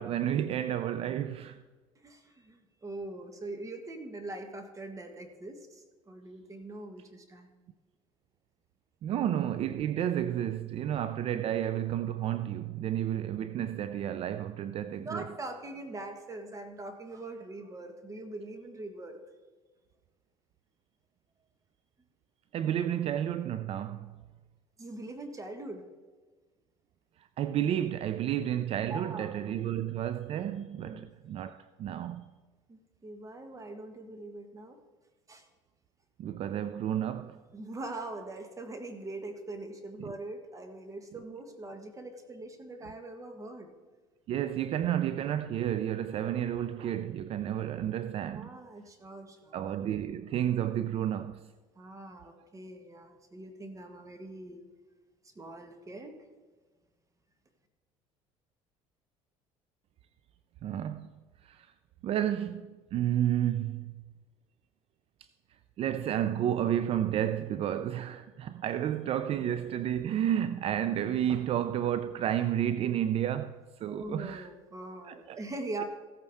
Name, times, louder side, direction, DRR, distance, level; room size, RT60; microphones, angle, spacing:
voice 1, 0.0-1.6 9.0-15.2 22.5-24.2 27.4-32.3 36.2-37.4 40.0-40.1 44.3-48.6 49.5-51.4 60.6-61.7 62.0-64.0 65.8-74.5 75.1-75.4, right 10 dB, 50° right, 0.4 m, -31 dB
voice 2, 2.0-7.5 15.0-19.2 24.8-25.8 28.9-29.7 30.8-31.1 32.7-34.8 35.3-35.5 37.5-43.7 48.3-49.6 51.7-54.6 55.3-56.2 73.9-75.8, right 2 dB, 25° right, 1.4 m, -42 dB
15.5 x 8.5 x 3.5 m
supercardioid pair, 95°, 13 cm